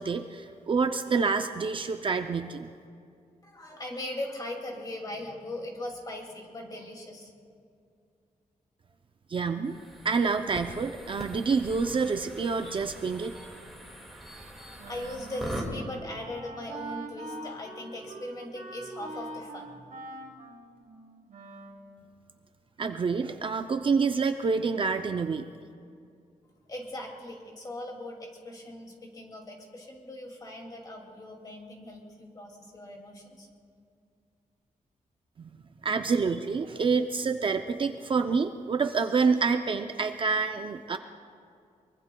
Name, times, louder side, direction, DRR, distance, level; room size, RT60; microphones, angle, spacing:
voice 1, 0.0-2.7 9.3-9.8 10.0-13.4 22.8-25.4 35.4-35.5 35.8-41.0, right 5 dB, 40° right, 7 dB, 0.5 m, -27 dB
voice 2, 3.4-7.3 14.7-20.0 26.7-33.5, left 1 dB, 30° left, 1 dB, 2.3 m, -40 dB
sound 1, 9.6-15.7, right 1 dB, ahead, 2.0 m, -42 dB
Wind instrument woodwind instrument, 14.8-21.9, right 2 dB, 80° right, 2.7 m, -43 dB
23.5 x 23.0 x 2.3 m, 2.4 s
wide cardioid pair, 180°, 14 cm